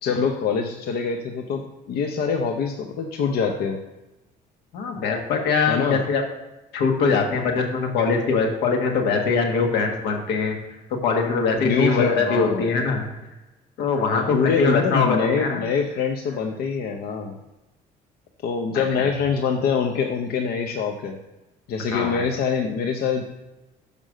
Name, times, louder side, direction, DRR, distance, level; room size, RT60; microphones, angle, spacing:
voice 1, 0.0-3.8 5.7-6.0 11.6-12.8 14.1-17.4 18.4-21.2 21.7-23.2, left 6 dB, 65° left, 4 dB, 0.7 m, -24 dB
voice 2, 4.7-6.2 6.7-10.6 11.0-13.2 13.8-15.6 18.7-19.1 21.9-22.3, left 4 dB, 85° left, 3 dB, 1.5 m, -22 dB
6.5 x 5.2 x 6.3 m, 1.0 s
cardioid pair, 110°, 17 cm